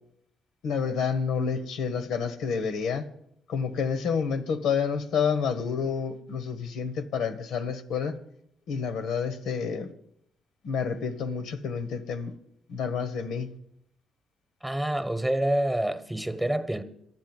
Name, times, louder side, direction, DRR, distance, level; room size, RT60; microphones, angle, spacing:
voice 1, 0.6-3.0 3.5-8.2 8.7-9.9 10.6-12.3 12.7-13.5, left 6 dB, 80° left, 1.2 m, -29 dB
voice 2, 14.6-16.8, right 1 dB, 10° right, 1.2 m, -27 dB
11.5 x 7.6 x 9.6 m
cardioid pair, 90°, 0 cm